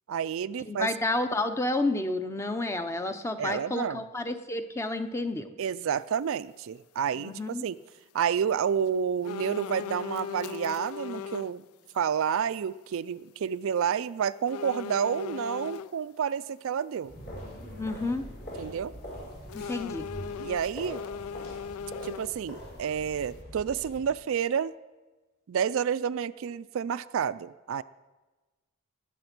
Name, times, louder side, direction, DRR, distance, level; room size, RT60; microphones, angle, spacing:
voice 1, 0.1-0.9 3.4-4.0 5.6-7.8 8.1-11.6 11.9-17.1 18.6-18.9 20.4-21.0 22.0-24.7 25.5-27.8, right 7 dB, 65° right, 15 dB, 0.4 m, -29 dB
voice 2, 0.7-5.5 7.2-7.6 17.8-18.2 19.5-20.1, left 2 dB, 15° left, 8 dB, 0.7 m, -30 dB
sound 1, 9.2-11.5 11.9-12.1 14.5-15.9 19.5-22.6 22.9-23.0, left 7 dB, 75° left, 0.3 m, -38 dB
sound 2, 17.0-24.1, equal, 50° left, 6.2 m, -43 dB
19.5 x 7.9 x 6.0 m, 1.2 s
head